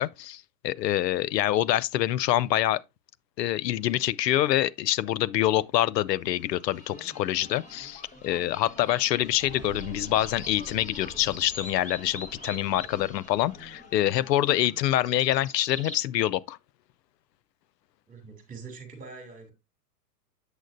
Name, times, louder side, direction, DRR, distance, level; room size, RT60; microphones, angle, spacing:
voice 1, 0.0-2.8 3.4-16.6, left 13 dB, 80° left, 0.6 m, -26 dB
sound 1, 6.3-16.0, left 2 dB, 15° left, 1.2 m, -45 dB
sound 2, 9.2-12.2, right 7 dB, 35° right, 1.4 m, -46 dB
voice 2, 18.1-19.5, right 4 dB, 15° right, 2.7 m, -44 dB
8.2 x 7.2 x 2.6 m
hypercardioid pair, 130°, 49 cm